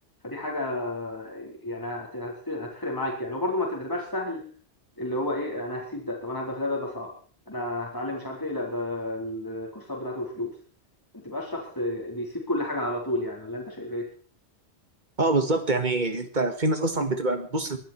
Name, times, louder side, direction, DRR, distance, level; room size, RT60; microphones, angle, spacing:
voice 1, 0.2-4.5 5.0-7.1 7.5-10.5 11.1-14.0, left 1 dB, 20° left, -2 dB, 4.5 m, -31 dB
voice 2, 15.2-17.8, right 2 dB, 45° right, 8 dB, 1.9 m, -25 dB
22.5 x 13.0 x 4.6 m, 0.43 s
omnidirectional pair, 1.1 m